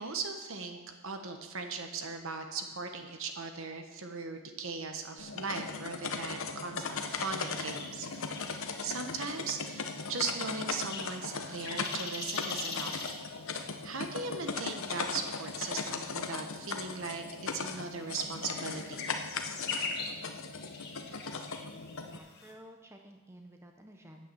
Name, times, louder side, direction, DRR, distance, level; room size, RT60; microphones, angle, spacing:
voice 1, 0.0-8.2 8.8-13.3 13.8-17.2 17.5-19.1, right 4 dB, 60° right, 5 dB, 1.2 m, -38 dB
sound 1, 5.2-22.2, left 4 dB, 60° left, 0.8 m, -38 dB
sound 2, 6.8-22.5, left 4 dB, 45° left, 1.7 m, -44 dB
voice 2, 22.1-24.3, equal, 10° right, 3 dB, 0.7 m, -52 dB
9.2 x 8.3 x 7.0 m, 1.2 s
head